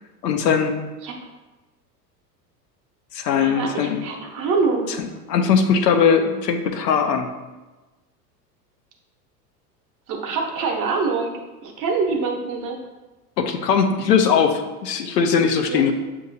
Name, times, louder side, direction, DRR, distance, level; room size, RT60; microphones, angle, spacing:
voice 1, 0.2-0.8 3.1-4.0 5.0-7.3 13.4-15.9, left 6 dB, 80° left, 5 dB, 0.7 m, -20 dB
voice 2, 3.4-5.0 10.1-11.3 11.6-12.8 15.7-15.8, right 4 dB, 40° right, 1 dB, 0.9 m, -25 dB
7.0 x 2.8 x 2.7 m, 1.1 s
hypercardioid pair, 85°, 49 cm